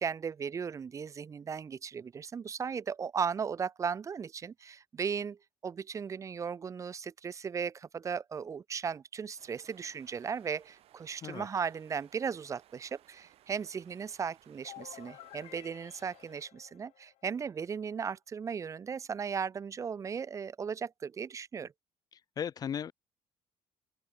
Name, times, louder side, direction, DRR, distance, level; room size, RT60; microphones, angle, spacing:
voice 1, 0.0-5.4 5.6-21.7, right 6 dB, 30° right, 0.7 m, -36 dB
sound 1, 9.4-16.5, right 13 dB, 65° right, 2.7 m, -63 dB
sound 2, 14.6-17.4, left 17 dB, 85° left, 1.7 m, -52 dB
voice 2, 22.1-22.9, left 8 dB, 35° left, 0.6 m, -37 dB
open air
cardioid pair, 135°, 11 cm